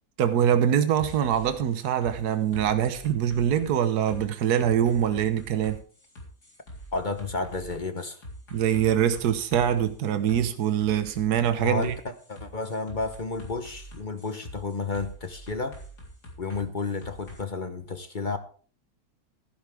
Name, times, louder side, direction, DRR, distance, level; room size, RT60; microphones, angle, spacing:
voice 1, 0.2-5.8 8.5-11.9, right 9 dB, 80° right, 1.5 m, -24 dB
sound 1, 1.0-17.4, equal, 85° left, 4.5 m, -44 dB
voice 2, 6.9-8.2 11.6-15.8 16.4-18.4, left 3 dB, 35° left, 0.9 m, -32 dB
14.5 x 11.5 x 3.5 m
omnidirectional pair, 1.7 m